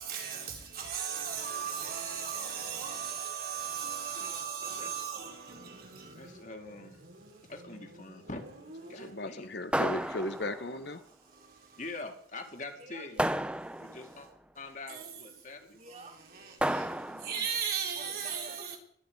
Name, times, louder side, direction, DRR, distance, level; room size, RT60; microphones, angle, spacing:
voice 1, 0.9-5.3 17.3-18.5, right 7 dB, 50° right, 3.8 m, -35 dB
voice 2, 4.2-5.1 6.1-7.0 7.5-8.5 8.9-9.5 11.8-13.3 13.8-14.3 14.5-15.8, left 2 dB, 45° left, 2.2 m, -44 dB
Motorcycle, 5.3-9.7, right 1 dB, 90° right, 7.3 m, -52 dB
voice 3, 9.0-11.0, left 1 dB, 65° left, 1.2 m, -36 dB
sound 1, 9.7-10.8 13.2-14.2 16.6-17.5, right 1 dB, 5° right, 0.7 m, -32 dB
voice 4, 12.8-13.4 15.7-16.2 17.0-17.5 17.9-18.8, right 2 dB, 35° right, 2.2 m, -50 dB
22.5 x 10.0 x 4.8 m
head